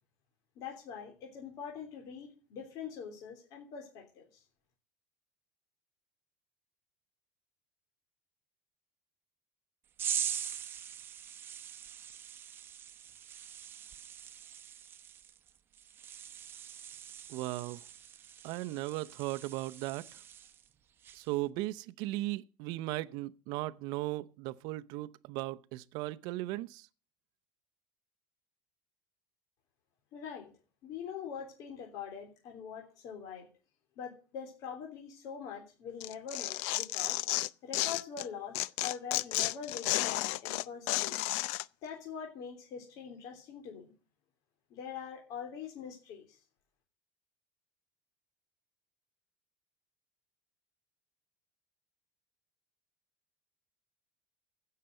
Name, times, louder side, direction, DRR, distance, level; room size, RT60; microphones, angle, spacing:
voice 1, 0.6-4.4 30.1-30.5 30.8-33.5 34.0-37.2 37.6-41.3 41.8-43.8 44.7-46.4, left 7 dB, 50° left, 3.3 m, -43 dB
sound 1, 10.0-20.7 21.0-21.4, right 9 dB, 30° right, 1.0 m, -42 dB
voice 2, 17.3-17.8 18.4-20.0 21.1-26.9, right 18 dB, 60° right, 0.7 m, -37 dB
Tearing, 36.0-38.3 38.5-41.6, left 18 dB, 70° left, 0.6 m, -32 dB
16.0 x 6.7 x 7.7 m
cardioid pair, 155°, 8 cm